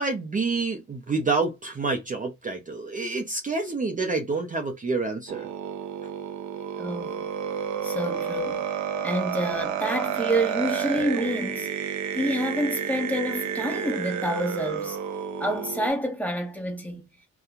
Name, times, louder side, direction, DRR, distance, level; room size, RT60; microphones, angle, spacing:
voice 1, 0.0-5.5, right 3 dB, 25° right, 0.7 m, -28 dB
sound 1, 5.3-15.9, right 8 dB, 70° right, 0.7 m, -30 dB
voice 2, 6.8-7.2 7.8-8.6 9.0-11.7 12.1-15.0 15.4-17.0, equal, 5° left, 1.3 m, -28 dB
2.8 x 2.3 x 3.7 m
cardioid pair, 90°, 30 cm